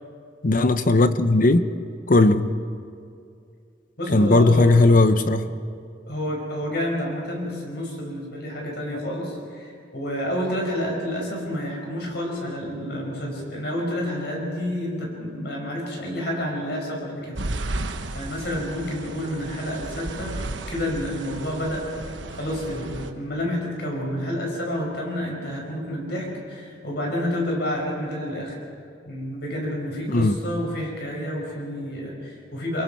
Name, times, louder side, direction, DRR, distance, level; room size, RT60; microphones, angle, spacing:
voice 1, 0.4-1.7 2.1-2.5 4.1-5.5 30.1-30.3, left 2 dB, 50° left, 11 dB, 0.8 m, -17 dB
voice 2, 4.0-4.7 6.1-17.8 18.1-20.4 20.7-21.9 22.3-28.6 29.0-32.8, equal, 65° left, -1 dB, 5.8 m, -29 dB
sound 1, 17.3-23.1, right 2 dB, 90° right, 1.1 m, -34 dB
25.0 x 22.0 x 4.7 m, 2.4 s
head